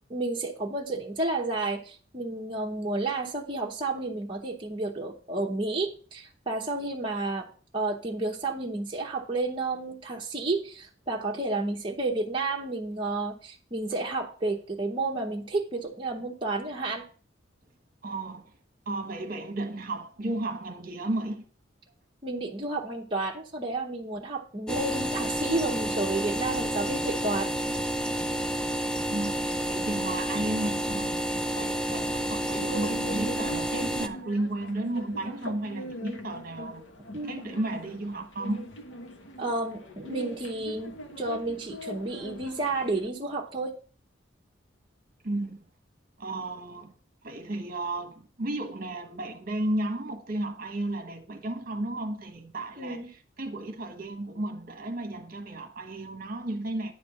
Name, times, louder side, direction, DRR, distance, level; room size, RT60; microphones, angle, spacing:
voice 1, 0.1-7.5 7.7-17.0 22.2-27.5 37.1-37.4 39.4-43.7 52.8-53.1, right 2 dB, 25° right, 0.9 m, -31 dB
voice 2, 18.0-18.5 18.9-21.4 29.1-38.7 45.2-45.6 46.2-46.9 47.2-53.0 53.4-56.9, right 1 dB, 50° right, 1.2 m, -33 dB
sound 1, 24.7-34.1, right 1 dB, 5° left, 0.4 m, -30 dB
sound 2, 32.4-43.1, equal, 85° left, 1.1 m, -41 dB
10.0 x 3.4 x 6.8 m
head